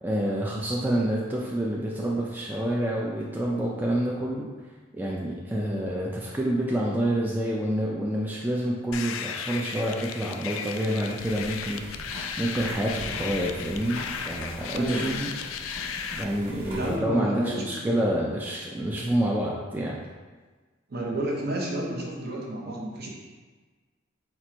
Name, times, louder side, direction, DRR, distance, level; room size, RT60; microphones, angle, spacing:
voice 1, 0.0-4.5 4.9-11.8 12.4-15.3 16.2-20.0, right 1 dB, 10° right, -4 dB, 0.3 m, -28 dB
sound 1, 8.9-16.2, left 7 dB, 85° left, 0.3 m, -35 dB
sound 2, 11.2-17.0, right 1 dB, 30° right, 1.2 m, -41 dB
voice 2, 14.7-15.2 16.7-18.1 20.9-23.2, right 1 dB, 55° right, -2 dB, 0.8 m, -31 dB
4.4 x 2.5 x 4.3 m, 1.4 s
head